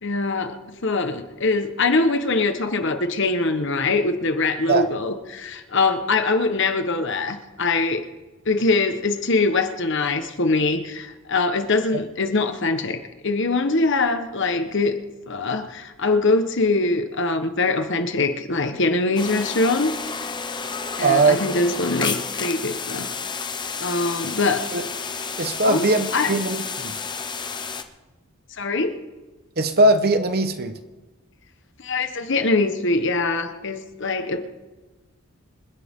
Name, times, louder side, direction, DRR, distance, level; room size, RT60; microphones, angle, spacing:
voice 1, 0.0-8.0 8.4-15.0 15.3-19.9 21.0-23.3 23.8-24.6 25.6-25.8 26.1-26.3 28.6-29.0 31.8-34.4, left 3 dB, 60° left, 8 dB, 1.3 m, -23 dB
sound 1, 19.2-27.8, left 5 dB, 20° left, 0.9 m, -31 dB
voice 2, 21.0-21.4 24.7-24.8 25.4-26.9 29.6-30.7, right 2 dB, 45° right, 9 dB, 1.1 m, -20 dB
27.0 x 10.5 x 3.8 m, 1.2 s
head